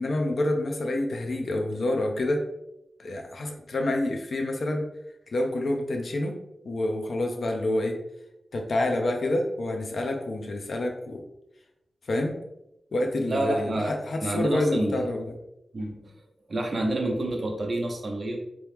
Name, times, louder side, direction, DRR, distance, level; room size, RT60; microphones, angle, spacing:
voice 1, 0.0-2.4 3.0-4.8 5.3-6.4 6.6-8.0 8.5-11.2 12.1-12.4 12.9-15.3, left 1 dB, 60° left, 3 dB, 0.6 m, -27 dB
voice 2, 13.3-13.9 14.2-15.1 15.7-16.1 16.5-18.4, right 1 dB, 45° right, 1 dB, 0.8 m, -28 dB
3.6 x 3.0 x 3.5 m, 0.86 s
wide cardioid pair, 160°, 0 cm